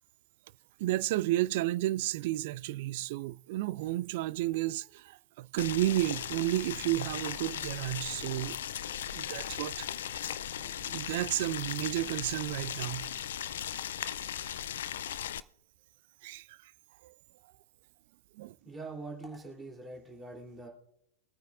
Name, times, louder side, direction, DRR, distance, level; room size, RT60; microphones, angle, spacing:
voice 1, 0.8-8.6 9.1-9.9 10.8-13.1 16.2-16.7 17.0-17.1 18.3-18.6, right 16 dB, 50° right, 0.3 m, -32 dB
Boiling, 5.6-15.4, left 10 dB, 60° left, 0.4 m, -38 dB
voice 2, 18.6-20.7, right 3 dB, 15° right, 3.2 m, -43 dB
24.0 x 9.2 x 2.5 m
figure-of-eight pair, 90°, 0 cm